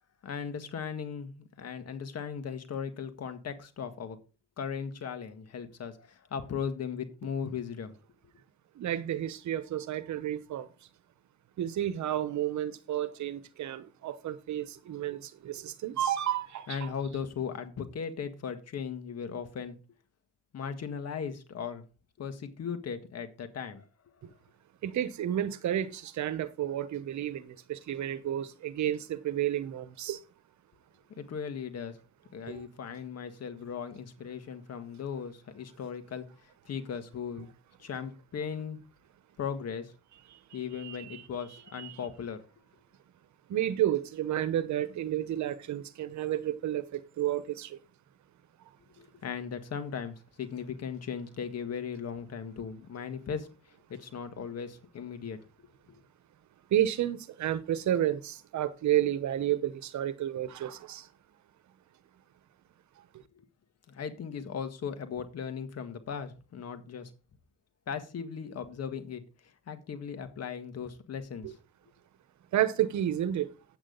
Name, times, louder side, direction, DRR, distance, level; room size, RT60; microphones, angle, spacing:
voice 1, 0.2-4.2 4.6-8.0 16.7-19.8 20.5-21.8 22.2-23.9 31.1-32.0 32.3-37.5 37.8-38.8 39.4-39.9 40.5-42.4 49.0-53.5 53.9-55.4 55.9-56.0 63.4-63.5 63.9-67.1 67.9-71.6, left 7 dB, 55° left, 1.7 m, -37 dB
voice 2, 8.8-10.7 11.6-16.8 24.2-24.3 24.8-30.2 32.5-32.6 40.3-40.4 40.8-41.2 41.8-41.9 43.5-47.8 56.7-61.1 71.4-71.5 72.5-73.5, right 11 dB, 70° right, 1.0 m, -31 dB
8.8 x 8.5 x 4.0 m
cardioid pair, 90°, 30 cm